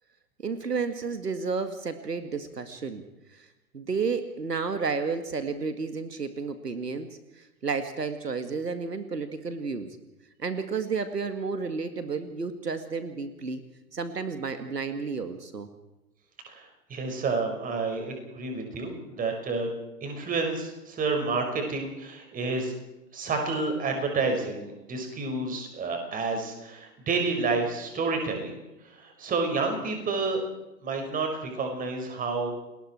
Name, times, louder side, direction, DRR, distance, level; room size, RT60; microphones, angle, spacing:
voice 1, 0.4-3.0 3.3-3.5 3.7-10.0 10.4-13.6 13.9-15.7, right 5 dB, 80° right, 9 dB, 2.2 m, -31 dB
voice 2, 16.4-19.7 20.0-22.7 23.1-28.5 28.8-30.4 30.8-32.5, right 4 dB, 15° right, 4 dB, 5.4 m, -29 dB
29.5 x 20.5 x 4.5 m, 0.98 s
figure-of-eight pair, 115°, 48 cm